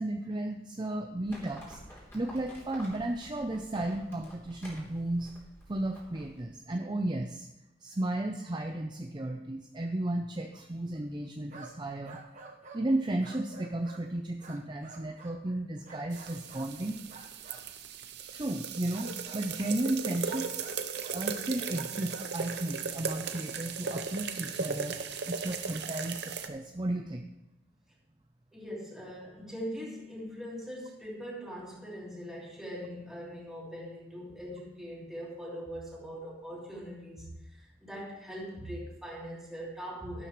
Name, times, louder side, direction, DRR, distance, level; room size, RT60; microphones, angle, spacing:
voice 1, 0.0-1.8 2.1-5.3 5.7-7.5 7.8-12.2 12.7-17.0 18.3-20.7 21.1-25.0 25.3-27.3, right 1 dB, 25° right, 4 dB, 0.6 m, -34 dB
Livestock farm animals working animals, 1.3-6.4, equal, 15° left, 3.4 m, -50 dB
sound 1, 11.5-11.8 12.1-12.9 13.2-14.1 14.4-15.4 15.8-16.7 17.1-17.7 18.9-19.8 20.2-21.3 21.7-22.3, right 4 dB, 40° right, 1.2 m, -49 dB
sound 2, 16.1-26.5, right 6 dB, 60° right, 0.8 m, -37 dB
voice 2, 28.5-40.3, equal, ahead, -6 dB, 3.3 m, -41 dB
12.0 x 12.0 x 3.2 m, 0.92 s
head